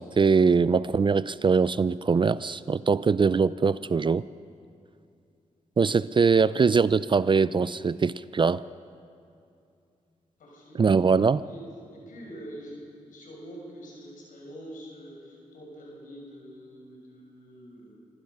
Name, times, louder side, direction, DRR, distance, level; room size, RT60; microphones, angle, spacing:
voice 1, 0.0-4.2 5.8-8.6 10.8-11.4, right 5 dB, 40° right, 18 dB, 0.4 m, -22 dB
voice 2, 10.4-10.9 11.4-11.6 11.9-18.0, equal, 85° left, -1 dB, 6.0 m, -45 dB
25.5 x 16.0 x 6.6 m, 2.5 s
cardioid pair, 70°, 13 cm